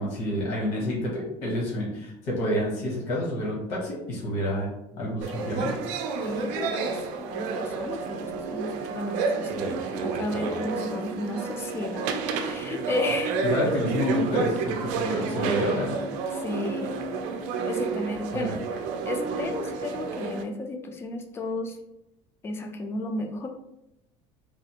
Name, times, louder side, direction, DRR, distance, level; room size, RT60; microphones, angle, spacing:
voice 1, 0.0-5.8 13.4-16.0, equal, 60° left, -4 dB, 1.2 m, -28 dB
sound 1, 5.2-20.4, right 4 dB, 70° right, 0.4 m, -30 dB
voice 2, 6.2-13.4 16.3-16.9 17.6-18.6 19.1-21.8 22.4-23.5, left 2 dB, 20° left, 4 dB, 0.4 m, -33 dB
3.2 x 2.4 x 2.8 m, 0.86 s
cardioid pair, 155°, 13 cm